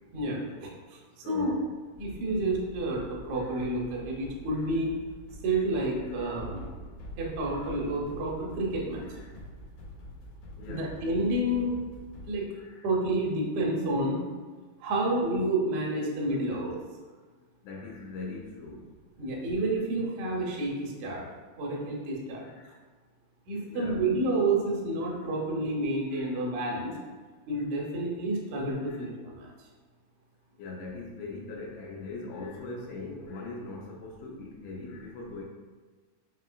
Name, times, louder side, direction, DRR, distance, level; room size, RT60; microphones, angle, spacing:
voice 1, 0.1-1.0 1.3-1.5 2.0-4.9 5.4-6.7 7.2-9.0 10.7-11.7 12.3-12.4 12.8-14.2 14.8-16.8 19.2-21.2 21.6-22.5 23.5-26.9 27.5-29.5, right 2 dB, 75° right, -3 dB, 1.8 m, -29 dB
voice 2, 1.2-1.6 3.3-3.6 6.1-6.3 7.5-7.7 9.1-9.3 10.6-11.0 12.1-12.3 12.6-12.9 16.5-16.6 17.6-18.9 22.4-22.8 23.7-24.0 26.1-26.5 28.9-29.1 30.6-35.4, left 3 dB, 90° left, -1 dB, 2.5 m, -41 dB
Escape Route (Action Drums), 1.9-12.3, equal, 75° left, 1.8 m, -46 dB
5.6 x 2.8 x 2.5 m, 1.4 s
omnidirectional pair, 4.1 m